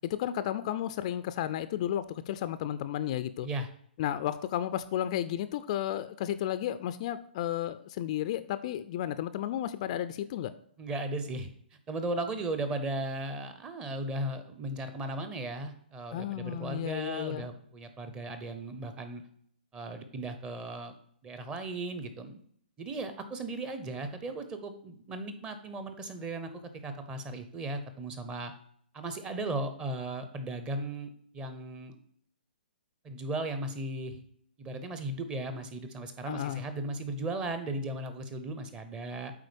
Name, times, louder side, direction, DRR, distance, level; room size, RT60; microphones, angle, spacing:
voice 1, 0.0-3.5 4.0-10.5 16.1-17.5 36.3-36.6, left 11 dB, 40° left, 13 dB, 0.4 m, -33 dB
voice 2, 10.8-11.5 11.9-19.2 19.7-20.9 21.2-22.4 22.8-26.5 26.8-28.5 28.9-31.9 33.0-34.2 34.6-39.3, right 2 dB, 15° right, 9 dB, 0.7 m, -36 dB
8.3 x 4.0 x 5.2 m, 0.64 s
hypercardioid pair, 150°, 6 cm